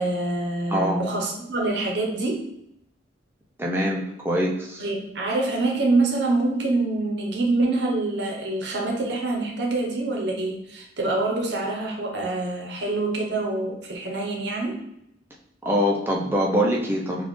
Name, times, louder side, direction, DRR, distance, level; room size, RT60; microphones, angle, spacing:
voice 1, 0.0-2.5 4.8-14.8, right 2 dB, 60° right, 1 dB, 0.8 m, -25 dB
voice 2, 0.7-1.0 3.6-4.8 15.6-17.2, equal, 10° right, -2 dB, 0.5 m, -24 dB
4.1 x 2.4 x 3.1 m, 0.76 s
head